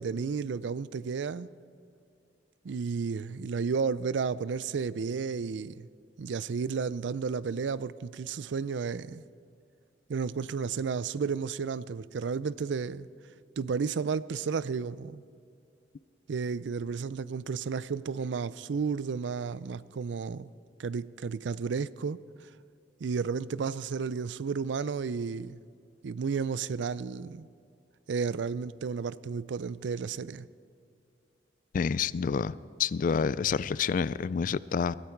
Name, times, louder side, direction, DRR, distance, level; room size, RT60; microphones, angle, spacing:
voice 1, 0.0-1.5 2.6-5.9 6.2-9.2 10.1-13.1 13.6-15.2 16.3-20.5 20.8-22.2 23.0-25.6 26.0-27.5 28.1-30.5, right 5 dB, 90° right, 0.4 m, -32 dB
voice 2, 31.7-32.5 32.8-34.9, left 6 dB, 50° left, 0.3 m, -28 dB
20.5 x 13.5 x 4.6 m
head